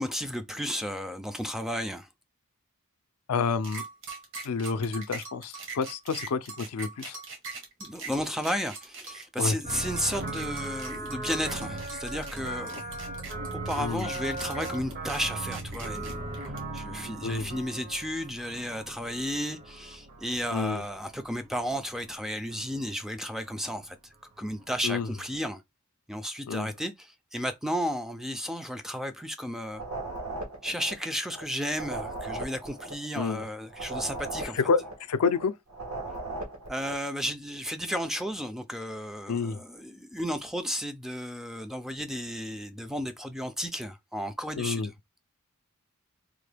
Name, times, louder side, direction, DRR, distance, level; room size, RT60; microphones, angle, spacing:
voice 1, 0.0-2.1 7.8-12.8 13.5-16.2 16.7-24.0 24.4-25.6 26.1-29.8 30.6-34.6 36.7-44.9, equal, ahead, 0.3 m, -33 dB
voice 2, 3.3-3.8 4.4-7.2 9.4-9.6 13.8-14.1 17.2-17.6 20.5-20.8 24.8-25.1 26.5-26.7 33.1-33.4 34.5-34.8 35.1-35.5 39.3-39.6 44.6-44.9, left 5 dB, 80° left, 0.4 m, -28 dB
sound 1, 3.6-17.1, right 4 dB, 60° right, 1.2 m, -42 dB
sound 2, 9.6-22.2 22.5-23.1 23.4-23.9 24.4-24.5 24.6-25.0 25.3-25.4, right 2 dB, 45° right, 0.8 m, -38 dB
sound 3, 29.7-31.4 31.7-35.4 35.7-37.1, right 2 dB, 80° right, 1.2 m, -38 dB
3.6 x 2.2 x 3.3 m
head